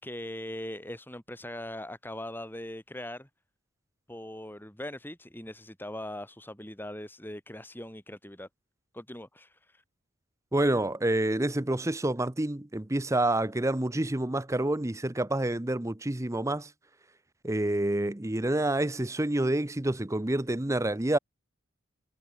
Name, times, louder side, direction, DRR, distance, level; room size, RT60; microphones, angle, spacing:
voice 1, 0.0-3.3 4.1-8.5 8.9-9.8, left 1 dB, 10° left, 3.7 m, -40 dB
voice 2, 10.5-16.7 17.4-21.2, right 1 dB, 15° right, 0.7 m, -28 dB
head